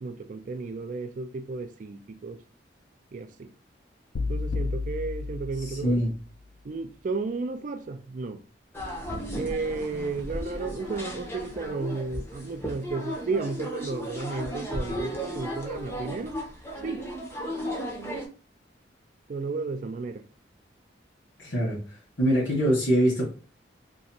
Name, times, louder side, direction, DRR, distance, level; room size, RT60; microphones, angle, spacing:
voice 1, 0.0-2.4 3.1-3.5 4.3-6.0 6.6-8.4 9.3-16.3 16.8-17.0 19.3-20.2, right 3 dB, 45° right, 0.3 m, -33 dB
sound 1, 4.1-6.3, left 3 dB, 55° left, 0.3 m, -32 dB
voice 2, 5.6-6.1 21.4-21.8 22.2-23.3, equal, 90° left, 1.4 m, -23 dB
sound 2, 8.7-18.3, equal, 15° left, 0.6 m, -35 dB
3.0 x 2.5 x 2.7 m
head